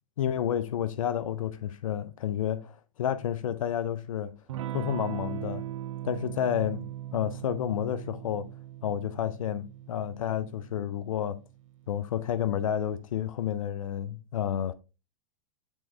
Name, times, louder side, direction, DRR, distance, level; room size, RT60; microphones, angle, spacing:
voice 1, 0.2-4.3 4.7-5.6 6.0-8.5 8.8-11.4 11.9-14.7, left 10 dB, 80° left, 0.5 m, -30 dB
Electric guitar / Strum, 4.5-12.8, right 12 dB, 70° right, 0.7 m, -40 dB
8.3 x 3.6 x 3.3 m
hypercardioid pair, 110°, 17 cm